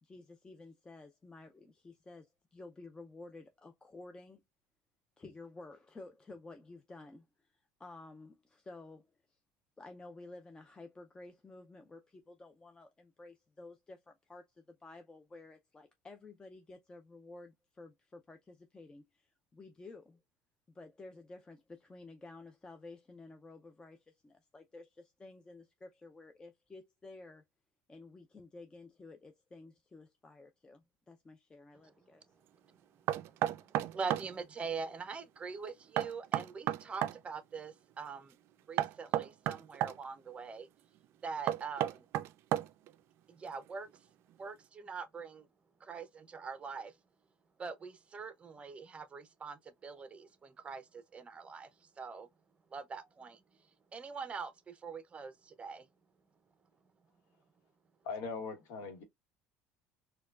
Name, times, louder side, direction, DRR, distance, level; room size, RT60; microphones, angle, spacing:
voice 1, 0.0-4.4 5.2-9.1 9.8-20.2 20.7-27.4 27.9-32.2, left 2 dB, 15° left, 0.5 m, -53 dB
Knock, 33.1-34.3 36.0-37.2 38.8-40.0 41.5-42.9, right 13 dB, 60° right, 0.3 m, -32 dB
voice 2, 33.2-38.3 38.7-40.7 41.2-42.0 43.3-43.9 44.4-45.5 45.8-47.0 47.6-52.3 52.7-53.4 53.9-55.9, right 5 dB, 25° right, 0.6 m, -43 dB
voice 3, 58.0-59.0, left 4 dB, 70° left, 1.1 m, -40 dB
4.3 x 2.3 x 2.3 m
supercardioid pair, 100°, 5 cm